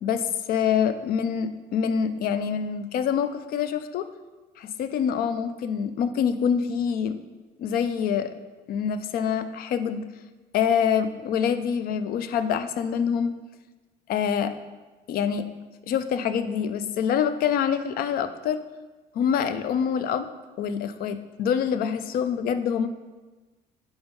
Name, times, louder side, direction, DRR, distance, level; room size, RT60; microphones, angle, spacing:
voice 1, 0.0-4.1 4.6-7.2 7.6-8.3 8.7-10.0 10.5-13.3 14.1-14.5 15.1-15.5 15.9-18.6 19.1-20.3 20.6-22.9, left 7 dB, 60° left, 11 dB, 0.4 m, -25 dB
5.2 x 3.5 x 5.3 m, 1.2 s
cardioid pair, 110°, 17 cm